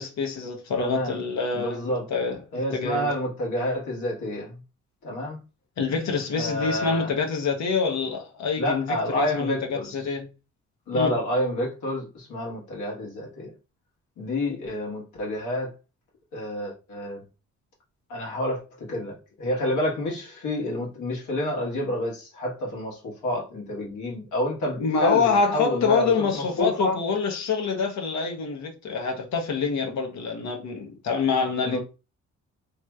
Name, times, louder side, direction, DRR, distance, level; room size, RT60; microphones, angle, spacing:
voice 1, 0.0-2.4 2.7-3.1 5.8-10.3 10.9-11.1 24.8-31.8, left 5 dB, 65° left, 0.8 m, -26 dB
voice 2, 0.8-1.2 1.5-2.0 2.5-4.6 5.0-5.4 6.3-7.1 8.6-10.1 10.9-13.5 14.2-15.7 16.3-17.2 18.1-27.0 31.6-31.8, left 1 dB, 85° left, 1.4 m, -29 dB
3.0 x 3.0 x 2.3 m
cardioid pair, 90°, 30 cm